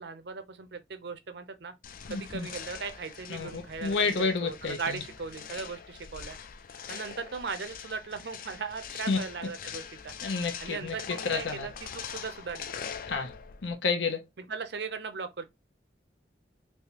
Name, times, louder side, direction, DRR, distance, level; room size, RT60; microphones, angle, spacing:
voice 1, 0.0-1.7 2.1-6.4 6.9-10.1 10.6-12.7 14.4-15.4, right 5 dB, 65° right, 0.6 m, -38 dB
sound 1, 1.8-13.7, left 7 dB, 50° left, 0.4 m, -43 dB
voice 2, 2.1-2.5 3.3-5.0 9.1-9.2 10.2-10.9 11.3-11.7 13.1-13.3 13.6-14.2, left 4 dB, 85° left, 0.8 m, -30 dB
3.4 x 2.8 x 2.9 m
head